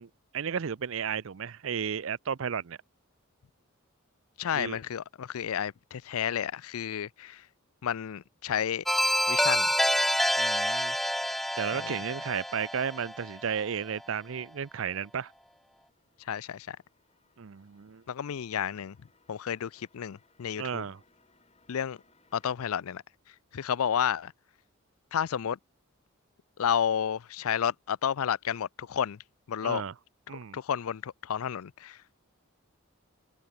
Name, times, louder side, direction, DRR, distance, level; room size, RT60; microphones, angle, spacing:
voice 1, 0.0-2.8 4.5-4.8 10.4-11.0 11.6-15.3 17.4-18.0 20.6-21.0 29.6-29.9 30.3-30.6, right 7 dB, 65° right, 0.5 m, -33 dB
voice 2, 4.4-7.4 7.8-8.8 9.3-9.7 11.8-11.9 16.3-16.8 18.1-19.0 19.3-20.8 21.7-22.0 22.3-23.0 23.5-24.3 25.1-25.6 26.6-29.2 29.5-29.8 30.5-32.0, left 8 dB, 80° left, 0.4 m, -31 dB
sound 1, 8.9-13.6, equal, ahead, 0.4 m, -28 dB
sound 2, 14.9-22.5, left 3 dB, 30° left, 6.3 m, -68 dB
head